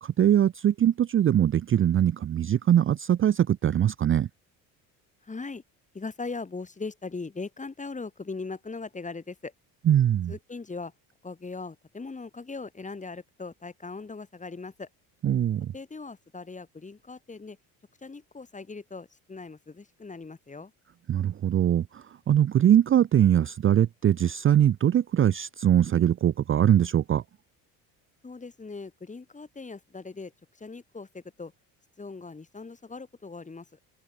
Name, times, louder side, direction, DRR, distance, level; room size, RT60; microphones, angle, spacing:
voice 1, 0.0-4.3 9.9-10.3 15.2-15.7 21.1-27.2, right 10 dB, 30° right, 0.6 m, -22 dB
voice 2, 5.2-5.6 5.9-9.5 10.3-10.9 11.2-14.9 15.7-17.6 18.0-20.7 28.2-30.3 30.6-31.5 32.0-33.7, left 4 dB, 20° left, 3.3 m, -39 dB
supercardioid pair, 100°, 40 cm